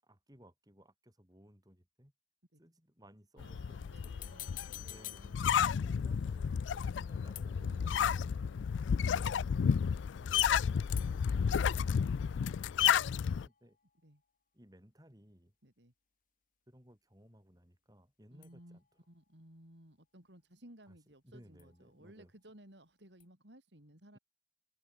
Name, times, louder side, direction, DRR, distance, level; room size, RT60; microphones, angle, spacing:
voice 1, 0.0-2.1 2.6-4.3 4.8-8.0 9.5-9.6 10.1-13.8 14.5-15.5 16.7-18.9 20.9-21.0 21.2-22.3, equal, 20° right, 5.3 m, -61 dB
voice 2, 3.3-5.8 7.5-8.8 14.0-14.2 15.6-15.9 18.3-18.8 19.1-24.2, right 1 dB, 75° right, 6.6 m, -58 dB
sound 1, 3.4-13.5, left 7 dB, 90° left, 0.4 m, -31 dB
sound 2, 3.8-5.9 7.4-8.0 9.2-9.7 11.0-12.7 13.0-14.2 18.4-19.2 21.6-22.2 23.2-23.3, left 15 dB, 45° left, 0.8 m, -52 dB
open air
head